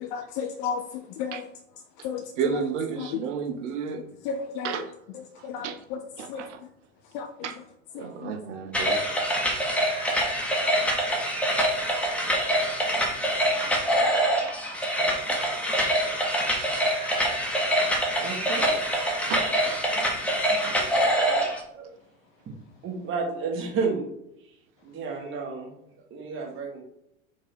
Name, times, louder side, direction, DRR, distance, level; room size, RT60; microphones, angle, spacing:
voice 1, 0.1-0.8 1.2-1.4 2.0-2.2 3.0-3.1 4.3-4.7 5.4-6.0 6.3-6.4 7.1-7.3 8.0-8.3, left 6 dB, 45° left, 5 dB, 0.5 m, -32 dB
voice 2, 2.4-4.0 4.6-4.9 5.6-5.8 6.2-6.6 7.4-7.6 8.0-9.0 17.8-17.9 19.3-19.8, right 6 dB, 60° right, 7 dB, 0.8 m, -32 dB
sound 1, 8.7-21.6, equal, 5° left, 1.0 m, -25 dB
voice 3, 18.2-18.8 19.4-19.6 19.9-20.0 20.5-20.9 21.1-21.9 22.5-22.6 22.8-24.0 24.8-25.7 26.1-26.8, right 4 dB, 30° right, 0 dB, 1.4 m, -32 dB
4.7 x 2.7 x 4.1 m, 0.80 s
figure-of-eight pair, 80°, 39 cm